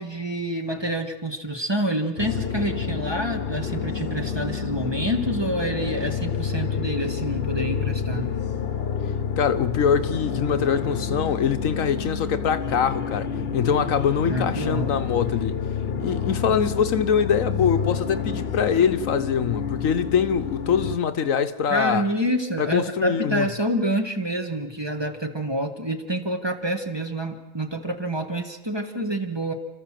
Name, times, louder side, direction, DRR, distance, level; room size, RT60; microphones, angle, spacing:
voice 1, 0.0-8.3 14.2-14.9 21.7-29.5, right 1 dB, 20° right, 1.6 m, -27 dB
sound 1, 2.2-21.0, left 6 dB, 45° left, 1.2 m, -29 dB
voice 2, 9.4-15.5 16.0-22.0 22.6-23.5, left 7 dB, 70° left, 1.2 m, -23 dB
30.0 x 13.5 x 7.5 m
omnidirectional pair, 1.5 m